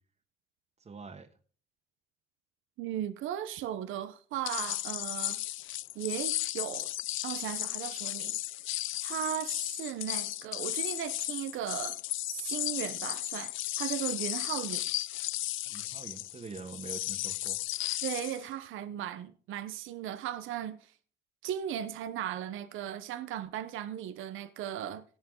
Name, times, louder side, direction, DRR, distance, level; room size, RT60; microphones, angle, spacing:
voice 1, 0.8-1.3 15.7-17.6, right 4 dB, 35° right, 1.6 m, -45 dB
voice 2, 2.8-5.4 5.9-6.9 7.2-8.4 9.0-12.0 12.3-14.9 18.0-20.9 21.4-25.0, right 11 dB, 90° right, 1.0 m, -37 dB
sound 1, 4.5-18.4, left 16 dB, 80° left, 0.5 m, -35 dB
18.0 x 7.4 x 3.9 m
cardioid pair, 90°, 20 cm